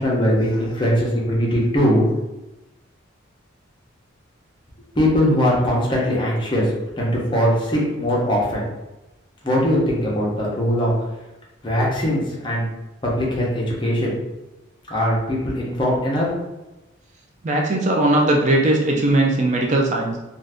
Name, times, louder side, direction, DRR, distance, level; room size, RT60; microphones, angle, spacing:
voice 1, 0.0-2.0 5.0-8.7 9.4-10.9 11.6-12.7 13.0-14.1 14.9-16.3, equal, 25° left, -4 dB, 0.7 m, -20 dB
voice 2, 17.4-20.2, right 1 dB, 35° right, 0 dB, 0.4 m, -19 dB
2.5 x 2.4 x 3.4 m, 0.99 s
head